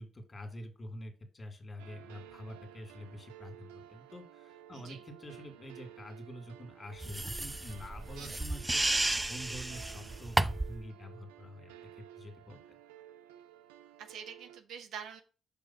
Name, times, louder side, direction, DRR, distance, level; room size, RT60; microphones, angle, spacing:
voice 1, 0.0-8.8 9.3-12.8, equal, 30° left, 5 dB, 1.9 m, -47 dB
sound 1, 1.8-14.6, right 11 dB, 85° right, 0.4 m, -54 dB
sound 2, 7.0-10.8, right 2 dB, 15° right, 0.4 m, -32 dB
voice 2, 8.2-8.5 14.0-15.2, right 7 dB, 65° right, 7 dB, 0.9 m, -46 dB
6.0 x 3.3 x 5.8 m, 0.37 s
hypercardioid pair, 45°, 0 cm